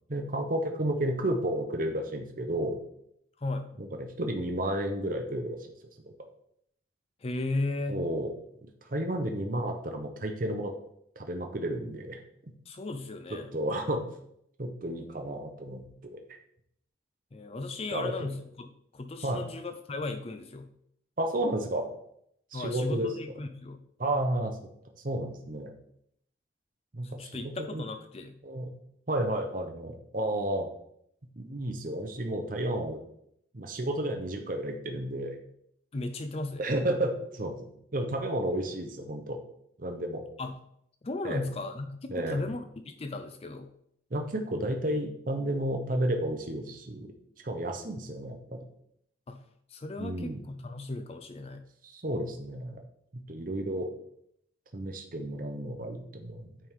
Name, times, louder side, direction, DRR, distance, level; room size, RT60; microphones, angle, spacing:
voice 1, 0.1-2.8 3.8-5.7 6.0-6.1 7.9-8.3 8.6-10.7 11.2-12.5 13.5-14.0 14.6-16.2 17.9-18.1 19.2-19.4 21.2-21.9 22.5-23.1 24.0-24.6 25.0-25.7 26.9-27.8 28.4-28.7 29.1-30.7 31.4-33.0 33.5-35.3 36.6-39.4 39.8-40.2 41.2-41.4 42.1-42.4 44.1-47.1 47.4-48.6 50.0-50.4 51.8-52.8 53.1-53.9 54.7-56.5, right 1 dB, 45° right, 4 dB, 0.8 m, -32 dB
voice 2, 3.4-3.7 7.2-8.0 12.7-13.5 17.3-20.7 22.5-23.8 27.0-28.4 35.9-36.6 40.4-40.6 41.0-43.7 49.3-49.4 49.7-51.7, left 2 dB, 30° left, 8 dB, 0.4 m, -36 dB
8.8 x 3.6 x 4.7 m, 0.72 s
head